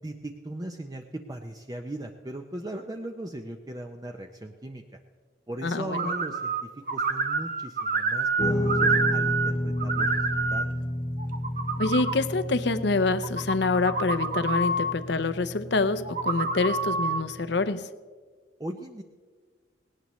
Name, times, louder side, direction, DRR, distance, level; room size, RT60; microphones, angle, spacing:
voice 1, 0.0-5.0 5.5-10.7 18.6-19.0, right 1 dB, 20° right, 3 dB, 0.6 m, -38 dB
voice 2, 5.6-6.1 11.8-17.9, left 3 dB, 65° left, 12 dB, 0.7 m, -26 dB
sound 1, 5.9-6.6 6.9-9.5 9.8-10.6 11.2-12.2 13.1-14.9 16.0-17.2, right 3 dB, 45° right, 1.0 m, -27 dB
Guitar, 8.4-17.7, left 1 dB, 30° left, 0.7 m, -32 dB
18.5 x 18.0 x 3.1 m, 1.5 s
head